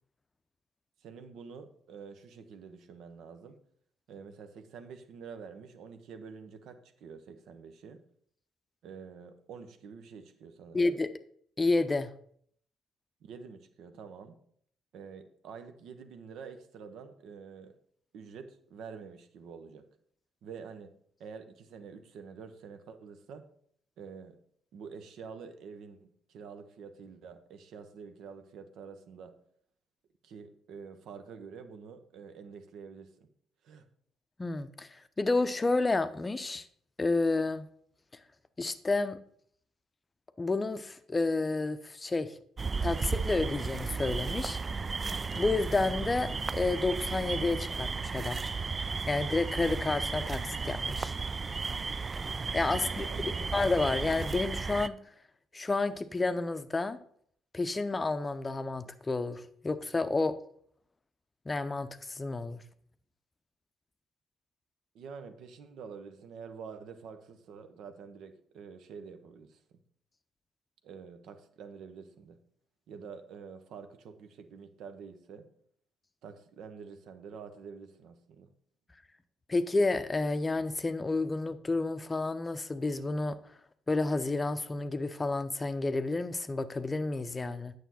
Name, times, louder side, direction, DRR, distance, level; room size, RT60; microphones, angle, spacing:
voice 1, 1.0-3.6 4.1-8.0 8.8-10.9 13.2-14.4 14.9-17.7 18.1-19.8 20.4-20.9 21.2-23.5 24.0-24.4 24.7-29.3 30.2-33.3 33.6-33.9 52.7-53.5 64.9-69.8 70.8-72.4 72.9-75.5 76.2-78.5, right 6 dB, 60° right, 8 dB, 0.9 m, -47 dB
voice 2, 10.7-11.1 11.6-12.1 34.4-36.6 37.0-37.7 38.6-39.2 40.4-42.4 42.8-44.6 45.4-48.4 49.1-51.2 52.5-55.0 55.5-57.0 57.5-60.4 61.5-62.6 79.5-83.4 83.9-87.7, left 3 dB, 25° left, 12 dB, 0.6 m, -30 dB
sound 1, 42.6-54.9, right 4 dB, 30° right, 0.3 m, -34 dB
9.1 x 6.6 x 4.2 m, 0.64 s
figure-of-eight pair, 45°, 0 cm